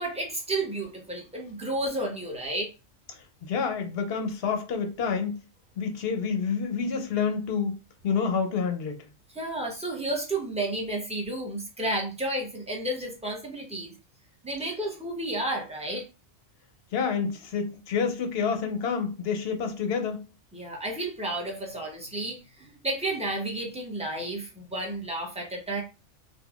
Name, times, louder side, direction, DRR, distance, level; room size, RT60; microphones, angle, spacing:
voice 1, 0.0-2.7 9.3-13.9 14.4-16.0 20.5-25.8, right 1 dB, 5° right, 0.6 m, -32 dB
voice 2, 3.1-5.3 5.8-7.8 8.0-9.1 16.9-20.2, left 6 dB, 60° left, 0.8 m, -28 dB
3.7 x 2.2 x 2.3 m
omnidirectional pair, 1.3 m